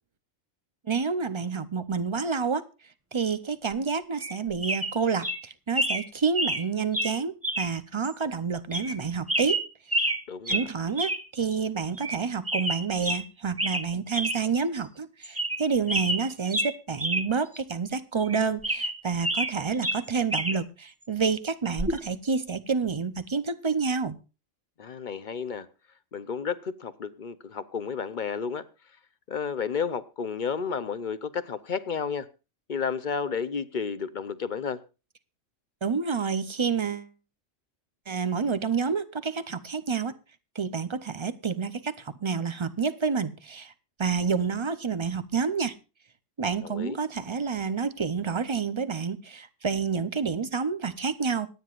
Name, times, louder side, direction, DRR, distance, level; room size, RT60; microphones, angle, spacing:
voice 1, 0.9-2.6 3.1-9.6 10.0-10.1 10.5-24.2 35.8-37.1 38.1-40.1 40.6-43.7 44.0-45.7 46.4-51.5, right 5 dB, 35° right, 0.5 m, -29 dB
sound 1, 4.2-4.4 4.6-4.9 5.2-5.4 5.8-6.0 6.4-6.6 6.9-7.1 7.4-7.7 8.0-8.1 8.7-9.0 9.3-10.2 10.5-10.7 11.0-11.2 11.5-11.6 12.0-12.2 12.5-13.2 13.6-13.9 14.1-14.4 14.8-14.9 15.2-15.6 15.9-17.3 17.6-17.7 18.2-19.5 19.8-20.6 21.8-22.0, right 1 dB, 10° right, 0.9 m, -28 dB
voice 2, 10.3-10.7 24.8-25.7 26.1-28.6 29.3-32.3 32.7-34.8 46.6-47.0, left 6 dB, 45° left, 0.7 m, -32 dB
25.5 x 9.4 x 2.4 m
omnidirectional pair, 1.3 m